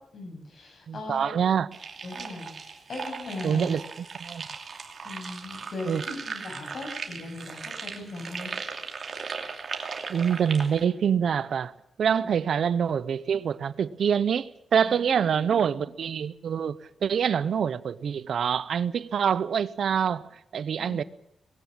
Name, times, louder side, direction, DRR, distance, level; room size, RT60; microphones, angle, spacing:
voice 1, 0.1-1.3 2.0-2.5 2.9-3.7 5.0-8.5 12.2-12.3 14.9-15.8 20.8-21.1, left 2 dB, 55° left, 7.7 m, -39 dB
voice 2, 0.9-1.7 3.4-3.8 4.2-4.4 5.8-6.0 10.1-11.7 12.0-21.0, right 7 dB, 65° right, 0.8 m, -26 dB
sound 1, 1.7-10.8, right 5 dB, 45° right, 2.7 m, -38 dB
20.5 x 17.0 x 8.8 m
wide cardioid pair, 140°, 0 cm